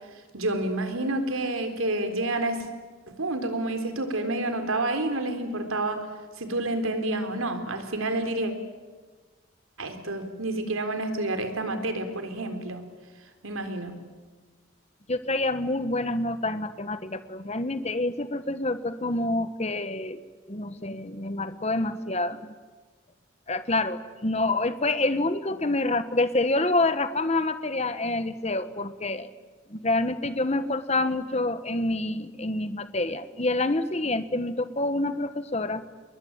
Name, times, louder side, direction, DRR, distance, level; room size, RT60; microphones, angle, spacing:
voice 1, 0.3-2.7 3.1-6.0 6.4-8.5 9.8-12.8 13.4-14.0, right 2 dB, 90° right, 7 dB, 3.9 m, -29 dB
voice 2, 15.1-20.2 20.5-22.5 23.5-29.3 29.7-35.8, left 2 dB, 30° left, 11 dB, 1.3 m, -27 dB
29.0 x 22.0 x 9.0 m, 1.4 s
head